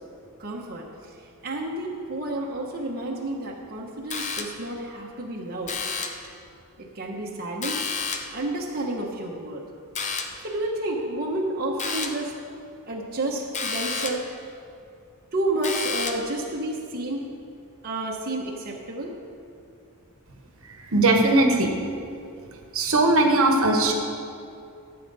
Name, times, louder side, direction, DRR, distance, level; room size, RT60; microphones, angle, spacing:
voice 1, 0.4-5.7 6.8-7.8 8.3-9.6 10.4-12.4 12.9-14.5 15.3-17.3 17.8-19.1, right 1 dB, 45° right, -3 dB, 1.1 m, -30 dB
sound 1, 4.1-4.8 5.7-6.3 7.6-8.4 10.0-10.5 11.8-12.3 13.5-14.3 15.6-16.4, left 4 dB, 30° left, 0.7 m, -31 dB
voice 2, 20.9-21.7 22.7-23.9, right 2 dB, 65° right, 2 dB, 1.2 m, -19 dB
13.5 x 7.8 x 4.1 m, 2.5 s
head